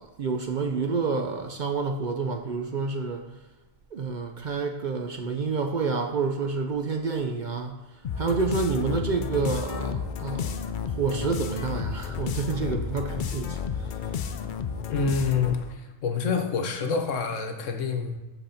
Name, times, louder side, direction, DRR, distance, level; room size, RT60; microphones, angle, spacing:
voice 1, 0.0-3.3 3.9-7.8 8.2-10.6 10.8-13.9, right 4 dB, 55° right, 0.6 m, -29 dB
sound 1, 8.0-15.7, left 6 dB, 60° left, 0.5 m, -32 dB
voice 2, 14.9-18.2, left 5 dB, 85° left, 1.3 m, -27 dB
7.9 x 4.4 x 5.7 m
omnidirectional pair, 1.3 m